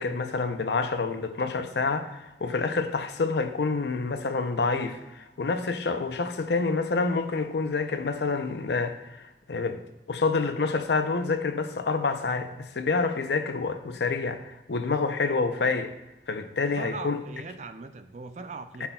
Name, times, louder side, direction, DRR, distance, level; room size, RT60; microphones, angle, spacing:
voice 1, 0.0-9.8 10.1-15.9 16.3-17.2 18.8-18.9, left 4 dB, 70° left, 0.6 m, -28 dB
voice 2, 16.8-18.9, right 4 dB, 40° right, 0.4 m, -40 dB
12.5 x 5.7 x 2.3 m
head